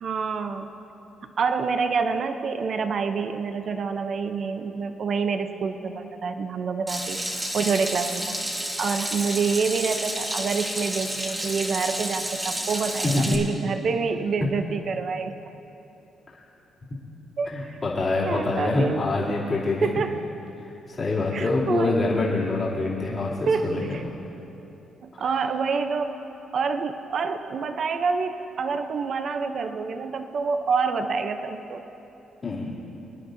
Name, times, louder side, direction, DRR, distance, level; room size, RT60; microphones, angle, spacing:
voice 1, 0.0-0.7 1.4-7.2 7.5-8.4 8.8-15.3 17.4-17.8 18.3-19.2 19.8-20.2 21.3-22.0 23.5-24.0 25.0-26.2 26.5-31.8, right 5 dB, 55° right, 7 dB, 0.6 m, -27 dB
Water tap faucet / Sink (filling or washing), 6.9-13.3, right 1 dB, 15° right, 1.7 m, -30 dB
voice 2, 13.0-13.4 17.4-19.9 20.6-23.9 25.2-25.4 32.4-32.8, left 2 dB, 40° left, -7 dB, 2.8 m, -25 dB
25.0 x 9.8 x 2.7 m, 3.0 s
cardioid pair, 90°, 0 cm